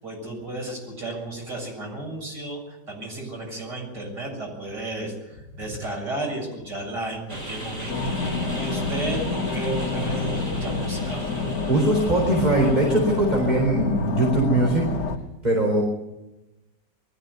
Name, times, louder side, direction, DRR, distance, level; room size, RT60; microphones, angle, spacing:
voice 1, 0.0-11.3, right 2 dB, 70° right, 0 dB, 7.9 m, -33 dB
sound 1, 7.3-13.5, equal, 45° right, 6.7 m, -38 dB
sound 2, 7.9-15.2, left 3 dB, 70° left, 2.0 m, -28 dB
voice 2, 11.7-14.9 15.4-15.8, right 1 dB, 25° right, -1 dB, 4.4 m, -21 dB
21.0 x 14.5 x 9.5 m, 0.98 s
omnidirectional pair, 1.9 m